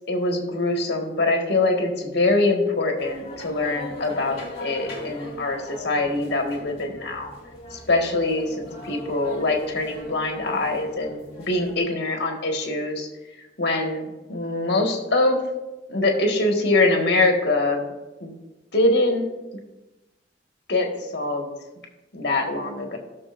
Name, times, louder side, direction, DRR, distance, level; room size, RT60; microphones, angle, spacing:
voice 1, 0.1-7.3 7.7-11.2 11.5-13.1 13.6-15.4 15.9-17.9 18.2-18.3 18.7-19.3 20.7-21.5 22.1-23.0, left 2 dB, 65° left, 2 dB, 1.7 m, -23 dB
sound 1, 3.0-11.8, equal, 35° left, 2.3 m, -39 dB
18.0 x 6.5 x 2.6 m, 1.1 s
head